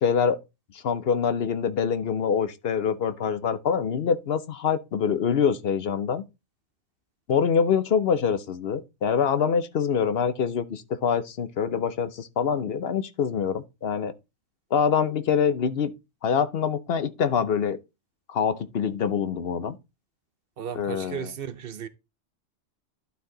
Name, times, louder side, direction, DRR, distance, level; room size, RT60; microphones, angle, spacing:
voice 1, 0.0-0.4 0.7-6.2 7.3-14.1 14.7-15.9 16.2-17.8 18.3-19.8 20.7-21.3, left 7 dB, 60° left, 0.9 m, -25 dB
voice 2, 20.6-21.9, right 8 dB, 60° right, 0.8 m, -35 dB
11.5 x 4.6 x 3.8 m
omnidirectional pair, 1.2 m